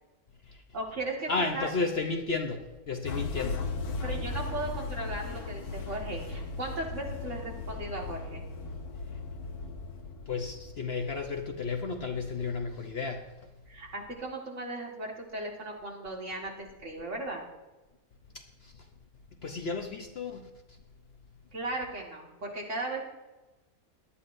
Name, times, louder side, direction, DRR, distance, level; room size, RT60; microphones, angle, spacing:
voice 1, 0.7-1.7 4.0-8.4 13.7-17.4 21.5-23.0, right 2 dB, 55° right, -1 dB, 2.2 m, -37 dB
voice 2, 1.3-3.6 10.3-13.5 18.3-18.9 19.4-20.8, left 4 dB, 50° left, 3 dB, 0.9 m, -33 dB
sound 1, 3.0-12.7, left 3 dB, 80° left, 1.6 m, -38 dB
18.5 x 11.5 x 2.6 m, 1.1 s
omnidirectional pair, 1.6 m